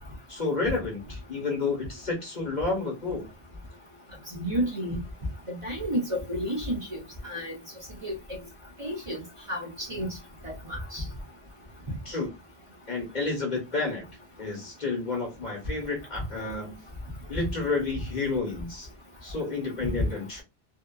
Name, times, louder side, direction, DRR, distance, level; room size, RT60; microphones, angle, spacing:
voice 1, 0.3-3.3 12.0-12.3 12.9-14.0 14.4-16.8 17.3-18.9 19.2-20.4, left 3 dB, 45° left, 1.1 m, -30 dB
voice 2, 4.4-5.0 5.5-7.0 7.2-7.6 8.0-8.4 8.8-9.2 9.5-10.1 10.4-11.0, equal, 35° right, 0.8 m, -31 dB
2.8 x 2.3 x 2.2 m
omnidirectional pair, 1.1 m